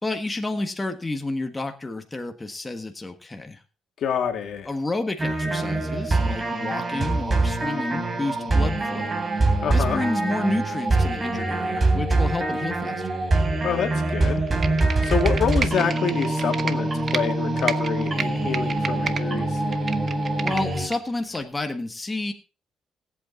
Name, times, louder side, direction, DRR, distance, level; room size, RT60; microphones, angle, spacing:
voice 1, 0.0-3.6 4.7-9.2 9.7-13.1 20.4-22.3, left 2 dB, 20° left, 5 dB, 1.4 m, -30 dB
voice 2, 4.0-4.7 9.6-10.0 13.6-14.4 15.0-19.6, left 7 dB, 65° left, 5 dB, 2.1 m, -27 dB
sound 1, 5.2-20.9, right 2 dB, 30° right, 3.2 m, -24 dB
Computer keyboard, 14.5-17.2 17.6-19.2 19.6-21.0 21.3-21.4, right 6 dB, 45° right, 1.0 m, -31 dB
17.5 x 8.4 x 4.0 m, 0.33 s
cardioid pair, 90°, 0 cm